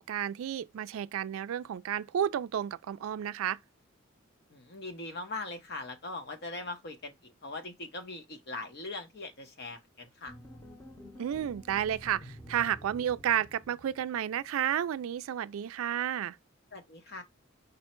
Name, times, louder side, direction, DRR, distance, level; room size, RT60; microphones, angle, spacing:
voice 1, 0.0-3.6 11.2-16.4, right 10 dB, 85° right, 0.3 m, -32 dB
voice 2, 4.5-10.3 16.7-17.2, left 2 dB, 50° left, 0.9 m, -41 dB
sound 1, 10.3-14.5, equal, 15° left, 0.8 m, -50 dB
5.3 x 2.1 x 4.4 m
head